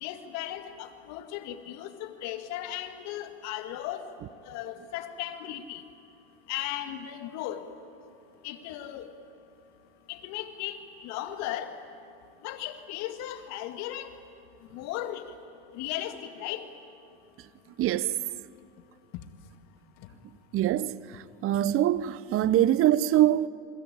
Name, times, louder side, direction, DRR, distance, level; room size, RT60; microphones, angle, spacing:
voice 1, 0.0-4.0 4.5-5.8 6.5-7.6 8.4-9.1 10.1-11.7 12.4-14.1 14.7-15.2 15.7-16.6, left 12 dB, 65° left, 2.2 m, -36 dB
voice 2, 17.8-18.2 20.5-21.0 21.4-23.5, right 12 dB, 50° right, 0.9 m, -23 dB
27.5 x 22.5 x 8.9 m
hypercardioid pair, 75°, 29 cm